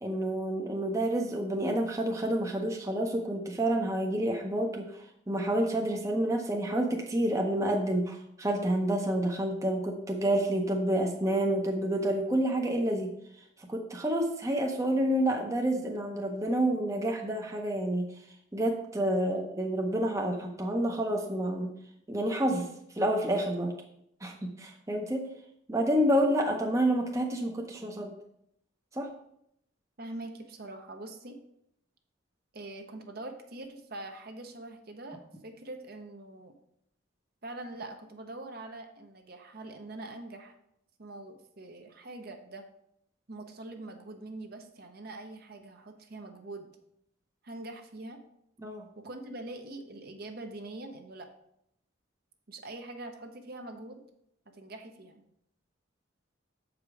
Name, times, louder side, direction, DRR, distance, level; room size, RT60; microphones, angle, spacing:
voice 1, 0.0-13.1 13.7-18.1 18.5-21.7 22.1-22.7 22.9-23.7 24.2-25.3 25.7-28.1 28.9-29.1 48.6-48.8, right 1 dB, 15° right, 2 dB, 0.7 m, -29 dB
voice 2, 30.0-31.4 32.5-36.5 37.4-40.5 41.0-42.7 43.3-46.7 47.4-48.2 49.0-51.3 52.5-54.0 54.5-55.2, right 2 dB, 50° right, 5 dB, 0.8 m, -43 dB
7.3 x 5.0 x 4.8 m, 0.75 s
head